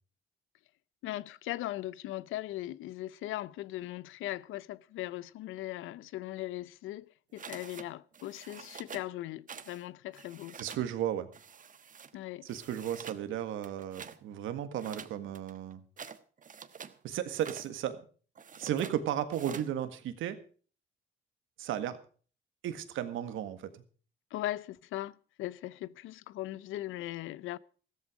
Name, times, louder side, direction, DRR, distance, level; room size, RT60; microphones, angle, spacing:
voice 1, 1.0-10.6 12.1-12.5 24.3-27.6, left 15 dB, 85° left, 0.6 m, -39 dB
sound 1, 7.4-7.9 8.1-9.1 9.5-9.8 10.1-10.9 11.3-12.1 12.5-13.2 13.6-14.2 14.8-17.0 17.3-17.7 18.4-19.0 19.3-19.7, right 6 dB, 40° right, 1.3 m, -47 dB
voice 2, 10.6-11.3 12.4-15.8 17.0-18.0 18.6-20.4 21.6-22.0 22.6-23.8, right 10 dB, 85° right, 1.8 m, -34 dB
15.0 x 13.5 x 5.0 m
cardioid pair, 90°, 20 cm